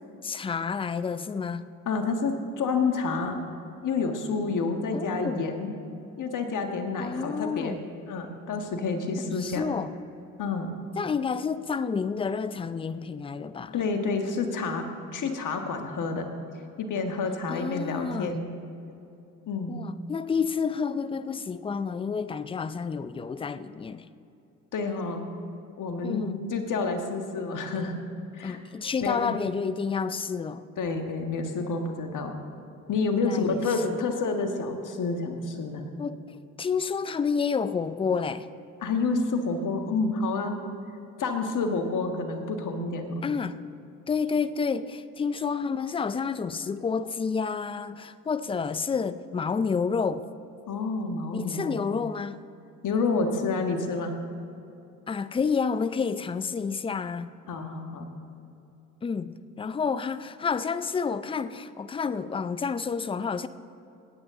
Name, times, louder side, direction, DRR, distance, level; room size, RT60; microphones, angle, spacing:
voice 1, 0.2-1.7 4.9-5.4 7.0-7.8 9.2-9.9 11.0-13.7 17.5-18.4 19.7-24.1 26.0-26.4 28.4-30.6 33.2-34.0 36.0-36.2 36.6-38.5 43.2-43.6 44.1-50.2 51.3-52.4 55.1-57.3 59.0-63.5, left 5 dB, 15° left, 0.4 m, -29 dB
voice 2, 1.8-3.3 3.8-5.7 6.2-7.8 8.1-9.6 10.4-10.7 13.7-14.8 15.1-16.3 16.8-18.5 19.5-19.8 24.7-25.3 25.8-27.9 28.3-28.6 29.0-29.4 30.8-32.3 32.9-35.9 38.8-40.5 41.2-43.2 50.7-51.8 52.8-54.1 57.5-58.1, left 4 dB, 50° left, 1.7 m, -29 dB
18.0 x 9.0 x 3.8 m
hypercardioid pair, 70°, 41 cm